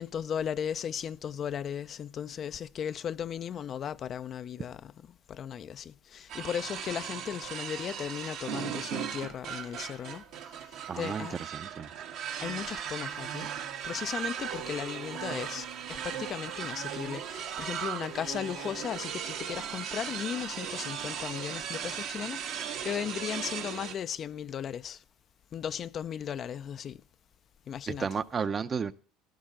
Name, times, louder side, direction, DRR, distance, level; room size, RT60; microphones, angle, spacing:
voice 1, 0.0-10.2 11.0-11.4 12.4-13.5 13.8-25.0 25.5-27.0 27.7-28.2, left 8 dB, 45° left, 0.4 m, -36 dB
sound 1, 6.3-23.9, right 8 dB, 65° right, 1.5 m, -37 dB
voice 2, 10.9-11.9 27.9-28.9, right 6 dB, 35° right, 0.7 m, -33 dB
13.0 x 11.5 x 3.7 m
hypercardioid pair, 80°, 0 cm